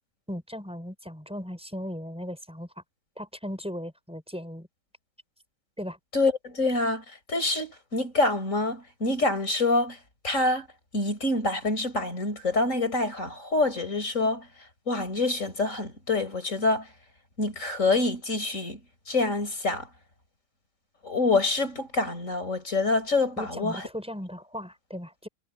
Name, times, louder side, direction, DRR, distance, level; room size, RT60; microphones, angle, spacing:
voice 1, 0.3-2.7 3.2-4.7 5.8-6.0 23.4-25.3, equal, 5° right, 5.0 m, -37 dB
voice 2, 6.1-10.0 10.2-10.7 10.9-14.5 14.9-16.9 17.4-18.8 19.1-19.9 21.0-23.8, left 2 dB, 50° left, 5.3 m, -26 dB
omnidirectional pair, 1.8 m